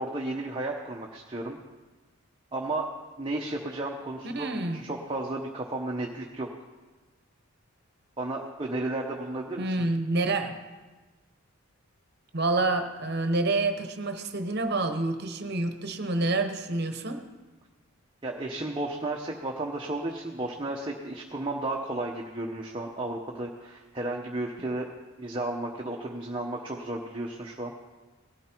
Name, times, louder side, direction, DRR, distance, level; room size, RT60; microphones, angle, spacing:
voice 1, 0.0-1.6 2.5-2.9 3.2-6.5 8.2-9.7 18.2-24.9 25.2-27.7, right 2 dB, 20° right, -1 dB, 0.9 m, -33 dB
voice 2, 4.3-4.8 9.6-10.6 12.3-17.2, right 2 dB, 50° right, 7 dB, 1.0 m, -28 dB
18.0 x 12.5 x 4.5 m, 1.3 s
head